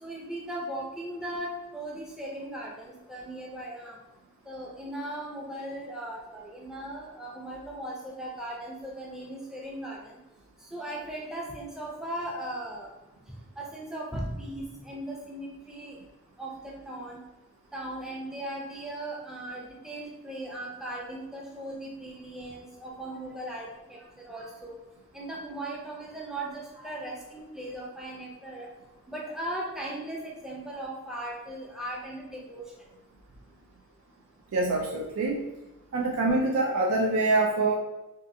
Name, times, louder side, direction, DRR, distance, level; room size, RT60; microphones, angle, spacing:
voice 1, 0.0-4.0 4.5-10.2 10.7-12.9 13.6-16.0 16.4-17.2 17.7-24.7 25.1-28.7 29.1-32.6, right 1 dB, 5° right, -3 dB, 0.5 m, -38 dB
voice 2, 34.5-35.4 35.9-37.7, right 2 dB, 90° right, 0 dB, 0.4 m, -25 dB
3.6 x 2.4 x 2.6 m, 1.0 s
head